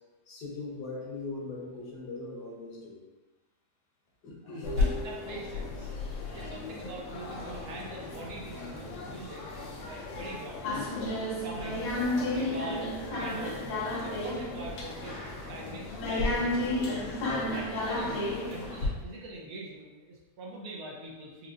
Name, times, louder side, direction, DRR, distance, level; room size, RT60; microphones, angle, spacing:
voice 1, 0.3-3.0 4.2-4.8, left 3 dB, 70° left, -3 dB, 1.4 m, -40 dB
voice 2, 4.4-5.9 6.3-9.4 9.8-10.9 11.4-11.9 12.3-13.6 14.0-16.9 17.4-21.5, right 1 dB, 65° right, -2 dB, 1.1 m, -43 dB
sound 1, 4.6-18.9, left 2 dB, 85° left, 1.4 m, -33 dB
4.7 x 2.5 x 2.5 m, 1.2 s
omnidirectional pair, 1.8 m